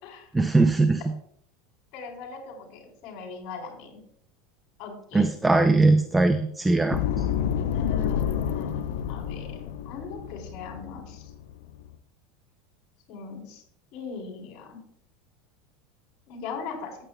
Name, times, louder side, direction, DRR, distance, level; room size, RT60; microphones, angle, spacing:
voice 1, 0.3-1.0 5.1-7.3, right 3 dB, 10° right, 9 dB, 0.4 m, -21 dB
voice 2, 1.9-4.0 4.8-5.3 7.7-11.3 13.1-13.6 13.9-14.8 16.3-17.0, left 5 dB, 60° left, -1 dB, 3.7 m, -39 dB
sound 1, 6.9-12.0, left 9 dB, 85° left, 0.7 m, -29 dB
14.5 x 8.8 x 2.3 m, 0.67 s
supercardioid pair, 130°, 0 cm